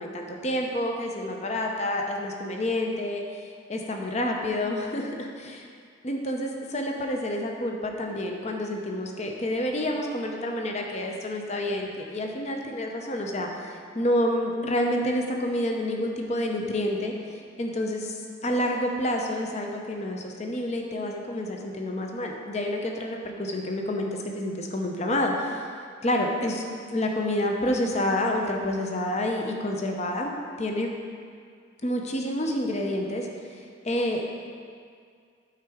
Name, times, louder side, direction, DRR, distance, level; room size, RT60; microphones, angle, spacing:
voice 1, 0.0-5.7 6.0-25.6 26.0-26.6 26.9-30.9 31.8-34.2, left 1 dB, 35° left, 1 dB, 0.7 m, -29 dB
9.0 x 4.6 x 4.9 m, 2.2 s
head